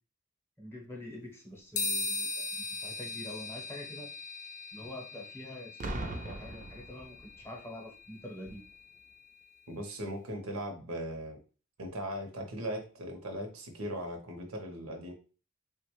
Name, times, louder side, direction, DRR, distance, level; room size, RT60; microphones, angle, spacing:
voice 1, 0.6-4.1 4.7-8.6, left 1 dB, 10° left, -1 dB, 0.8 m, -46 dB
sound 1, 1.8-9.4, left 3 dB, 35° left, 0.3 m, -40 dB
Boom, 5.8-7.6 8.4-8.7, right 2 dB, 40° right, 0.4 m, -39 dB
voice 2, 9.7-11.4 11.8-15.1, equal, 75° right, 4 dB, 0.7 m, -38 dB
3.4 x 2.1 x 3.0 m, 0.36 s
head